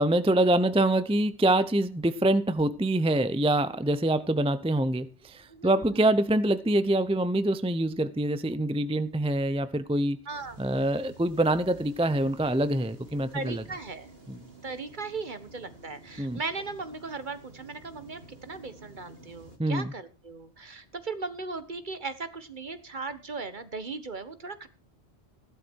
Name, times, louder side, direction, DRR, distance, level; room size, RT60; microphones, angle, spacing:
voice 1, 0.0-10.2 10.6-13.6 14.3-14.4 16.2-16.4 19.6-19.9, right 1 dB, 5° right, 0.6 m, -25 dB
voice 2, 5.5-6.1 10.3-10.6 13.3-14.1 14.6-24.7, right 4 dB, 45° right, 1.5 m, -37 dB
sound 1, 10.3-19.6, right 2 dB, 65° right, 3.1 m, -51 dB
15.5 x 12.0 x 4.6 m
omnidirectional pair, 1.1 m